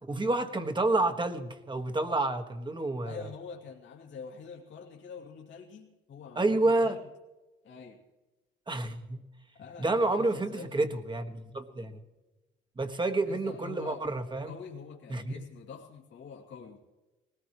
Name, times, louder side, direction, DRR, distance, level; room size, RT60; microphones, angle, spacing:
voice 1, 0.0-3.2 6.3-6.9 8.7-9.2 9.8-12.0 12.8-14.5 15.1-15.4, right 2 dB, 25° right, 6 dB, 1.6 m, -29 dB
voice 2, 3.0-7.0 7.6-8.0 9.5-10.9 13.3-14.0 14.4-16.8, left 6 dB, 70° left, -1 dB, 2.4 m, -45 dB
20.0 x 19.0 x 3.1 m, 1.1 s
cardioid pair, 90°, 20 cm